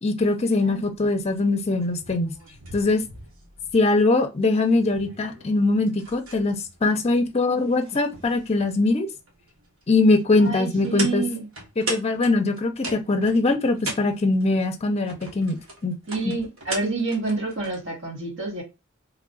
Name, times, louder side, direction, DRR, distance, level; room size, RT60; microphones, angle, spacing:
voice 1, 0.0-2.3 2.7-3.0 3.7-9.1 9.9-11.2 11.8-16.0 16.2-16.3, left 2 dB, 30° left, 0.5 m, -22 dB
sound 1, 0.6-17.9, right 2 dB, 80° right, 1.3 m, -40 dB
voice 2, 10.4-11.5 16.1-18.6, right 3 dB, 60° right, 1.5 m, -28 dB
3.1 x 2.4 x 3.8 m
head